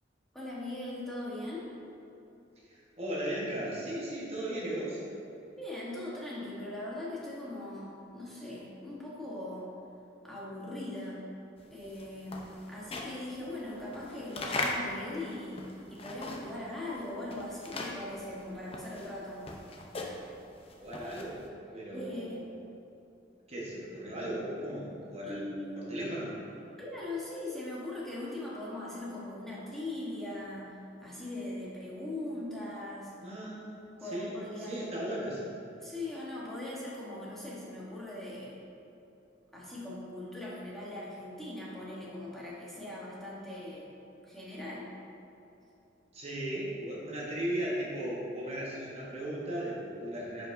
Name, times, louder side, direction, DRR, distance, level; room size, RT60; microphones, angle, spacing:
voice 1, 0.3-1.6 5.6-9.7 10.2-11.2 11.7-15.6 15.9-19.4 21.9-22.5 25.3-26.0 26.8-33.1 34.0-35.0 35.8-38.6 39.5-43.9 44.2-44.9, left 1 dB, ahead, -7 dB, 1.2 m, -40 dB
voice 2, 2.7-5.0 20.7-21.4 21.7-22.5 23.5-26.4 33.2-35.5 46.1-50.5, right 1 dB, 35° right, -5 dB, 1.2 m, -37 dB
sound 1, 11.7-16.7 17.0-21.5, left 2 dB, 35° left, 0.6 m, -39 dB
10.5 x 5.2 x 2.6 m, 2.9 s
head